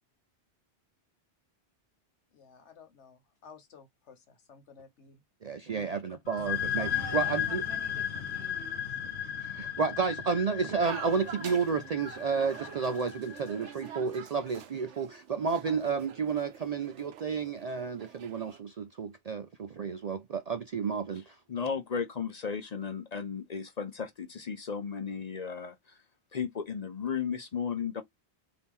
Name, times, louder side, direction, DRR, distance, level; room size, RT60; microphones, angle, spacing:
voice 1, 2.3-5.2 5.7-6.4, left 6 dB, 85° left, 1.3 m, -54 dB
voice 2, 5.4-7.6 9.4-21.4, right 5 dB, 55° right, 0.4 m, -31 dB
sound 1, 6.2-13.7, left 9 dB, 65° left, 1.0 m, -35 dB
voice 3, 6.7-8.9, right 5 dB, 75° right, 1.3 m, -47 dB
sound 2, 10.8-18.6, right 9 dB, 90° right, 1.0 m, -46 dB
voice 4, 21.5-26.0 26.3-28.0, left 6 dB, 45° left, 0.6 m, -35 dB
4.1 x 2.9 x 3.6 m
omnidirectional pair, 1.1 m